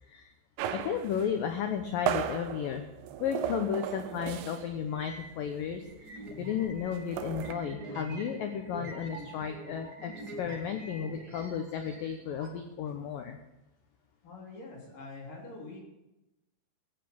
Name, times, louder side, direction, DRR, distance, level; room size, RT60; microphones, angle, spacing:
voice 1, 0.0-0.3 0.7-2.9 3.2-13.4, left 8 dB, 75° left, 6 dB, 2.2 m, -34 dB
sound 1, 0.6-4.8 5.1-5.3 5.6-7.5, right 10 dB, 75° right, 2.6 m, -36 dB
sound 2, 4.2-4.3 4.6-12.5, right 1 dB, 35° right, 1.9 m, -46 dB
voice 2, 14.2-15.8, left 3 dB, 50° left, -2 dB, 4.7 m, -45 dB
15.5 x 8.4 x 7.1 m, 0.94 s
omnidirectional pair, 5.0 m